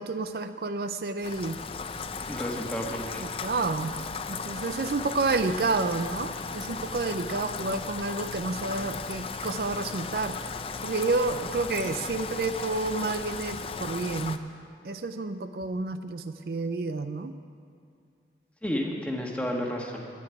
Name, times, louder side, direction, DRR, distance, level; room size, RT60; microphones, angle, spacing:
voice 1, 0.0-1.6 3.2-3.9 4.3-10.4 10.8-14.4 14.8-17.3, right 3 dB, 55° right, 9 dB, 0.4 m, -30 dB
Rain, 1.2-14.4, left 4 dB, 30° left, 0.4 m, -36 dB
voice 2, 2.2-3.2 18.6-20.1, equal, 5° left, 0 dB, 1.3 m, -31 dB
9.8 x 9.3 x 9.8 m, 2.3 s
head